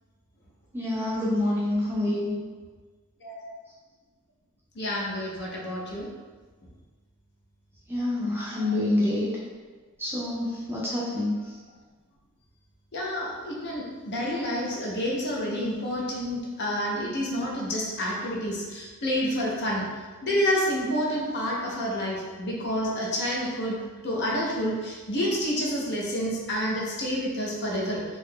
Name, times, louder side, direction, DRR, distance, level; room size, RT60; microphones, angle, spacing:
voice 1, 0.7-2.3 7.9-9.3 10.0-11.3, left 1 dB, 10° right, -6 dB, 0.5 m, -27 dB
voice 2, 4.8-6.1 12.9-19.9 20.2-23.8 24.0-28.0, equal, 50° left, -3 dB, 0.6 m, -29 dB
2.7 x 2.4 x 3.6 m, 1.4 s
head